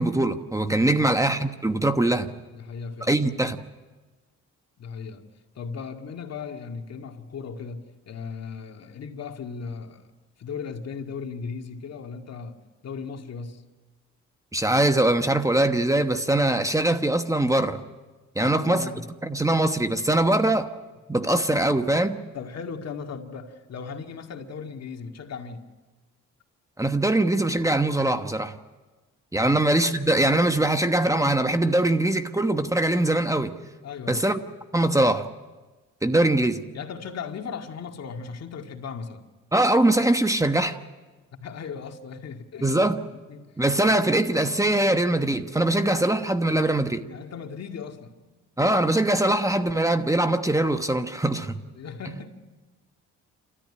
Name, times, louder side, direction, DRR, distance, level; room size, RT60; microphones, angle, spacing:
voice 1, 0.0-2.3 3.0-3.6 14.5-17.8 18.4-20.7 21.1-22.2 26.8-28.5 29.3-33.5 34.1-34.4 34.7-35.3 36.0-36.6 39.5-40.8 42.6-43.0 43.6-47.0 48.6-51.6, right 1 dB, 10° right, 1.1 m, -22 dB
voice 2, 0.8-1.2 2.5-3.2 4.8-5.2 5.6-10.1 10.4-12.6 12.8-13.6 18.4-19.0 22.3-25.6 29.4-29.6 33.8-34.3 36.2-36.3 36.7-39.3 41.4-42.7 43.1-43.5 46.5-46.7 47.0-48.1 51.8-52.3, left 5 dB, 55° left, 2.2 m, -37 dB
29.5 x 13.5 x 9.9 m
cardioid pair, 90°, 30 cm